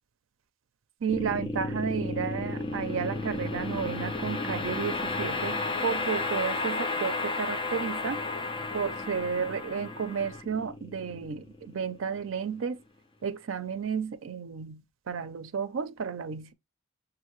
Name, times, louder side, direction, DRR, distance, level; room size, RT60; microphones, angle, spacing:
voice 1, 1.0-8.2 8.7-12.8 13.2-16.5, right 6 dB, 70° right, 0.5 m, -32 dB
sound 1, 1.1-12.3, left 3 dB, 25° left, 0.7 m, -33 dB
6.4 x 2.5 x 3.0 m
head